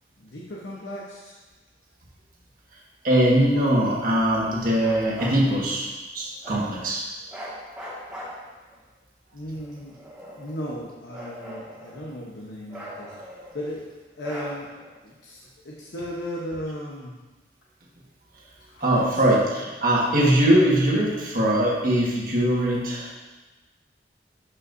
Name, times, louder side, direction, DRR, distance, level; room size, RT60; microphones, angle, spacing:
voice 1, 0.2-1.4 9.3-10.0 10.3-13.3 13.5-14.7 15.0-17.2 18.7-19.4, equal, 80° left, -4 dB, 1.0 m, -36 dB
voice 2, 3.0-5.9 6.1-7.1 18.8-23.1, right 1 dB, 50° right, -4 dB, 1.6 m, -21 dB
Bark, 4.8-5.4 6.4-6.7 7.3-8.7 9.5-10.6 11.1-12.2 12.7-13.7 14.2-14.9, equal, 5° right, 1.9 m, -40 dB
12.0 x 5.5 x 2.7 m, 1.2 s
head